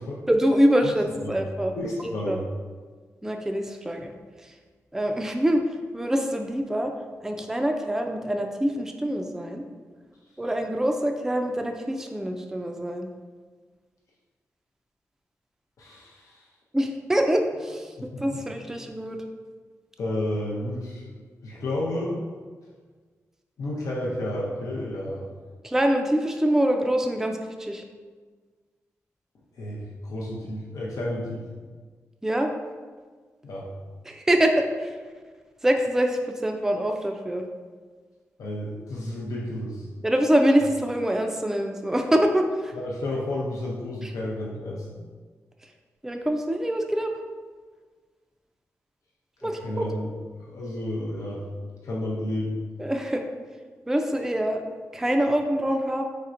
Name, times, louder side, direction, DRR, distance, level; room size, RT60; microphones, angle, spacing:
voice 1, 0.3-1.7 2.3-2.4 3.2-4.1 4.4-4.5 4.9-6.9 7.2-9.6 10.4-13.1 16.7-19.2 25.6-27.8 32.2-32.5 34.1-35.0 35.6-37.4 40.0-42.7 44.0-44.1 46.0-47.1 49.4-49.9 52.8-53.2 53.9-54.6 54.9-56.0, equal, 10° right, 3 dB, 0.3 m, -25 dB
voice 2, 1.7-2.4 15.8-16.5 18.0-18.4 20.0-21.1 21.4-22.2 23.6-25.3 29.5-31.5 33.4-33.7 38.4-39.9 42.7-44.9 49.4-50.1 50.4-51.4 51.8-52.6, left 1 dB, 80° left, -4 dB, 0.6 m, -31 dB
4.2 x 3.2 x 2.5 m, 1.5 s
cardioid pair, 75°, 6 cm